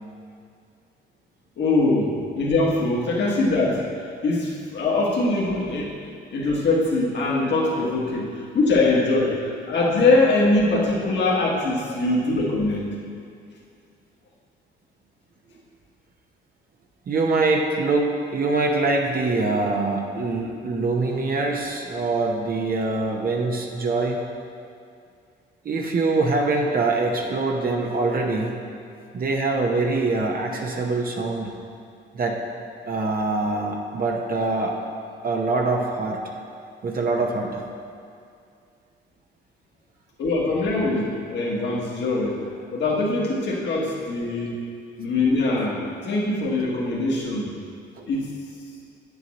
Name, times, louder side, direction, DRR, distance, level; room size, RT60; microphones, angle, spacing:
voice 1, 1.6-3.8 4.2-5.8 6.3-12.9 40.2-42.4 42.7-44.6 45.0-47.5 48.1-48.3, left 2 dB, 60° left, -4 dB, 1.5 m, -22 dB
voice 2, 17.1-24.2 25.6-28.6 29.1-31.5 32.1-32.4 32.9-34.8 35.2-36.2 36.8-37.6 48.0-48.1, right 3 dB, 50° right, 1 dB, 0.9 m, -24 dB
9.0 x 7.0 x 4.2 m, 2.4 s
cardioid pair, 90°, 20 cm